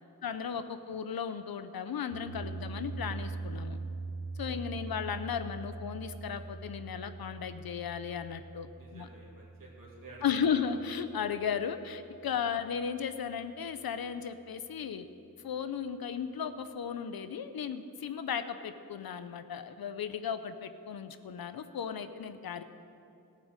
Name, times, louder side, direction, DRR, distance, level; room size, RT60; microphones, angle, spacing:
voice 1, 0.2-3.8 4.4-9.1 10.2-15.0 15.4-22.6, left 7 dB, 70° left, 11 dB, 0.7 m, -35 dB
sound 1, 2.1-12.3, right 3 dB, 40° left, 1.6 m, -43 dB
voice 2, 4.5-4.9 8.8-10.7 12.6-12.7, right 2 dB, 60° right, -4 dB, 2.7 m, -51 dB
14.5 x 8.5 x 6.6 m, 2.7 s
wide cardioid pair, 90°, 37 cm